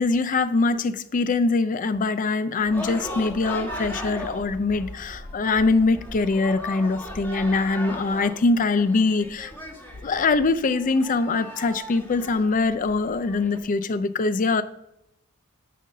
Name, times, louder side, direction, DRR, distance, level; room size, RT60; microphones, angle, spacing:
voice 1, 0.0-9.5 10.0-14.6, left 3 dB, 40° left, 13 dB, 0.4 m, -23 dB
sound 1, 2.6-13.6, equal, 10° left, 1.5 m, -38 dB
10.0 x 3.9 x 6.5 m, 0.83 s
head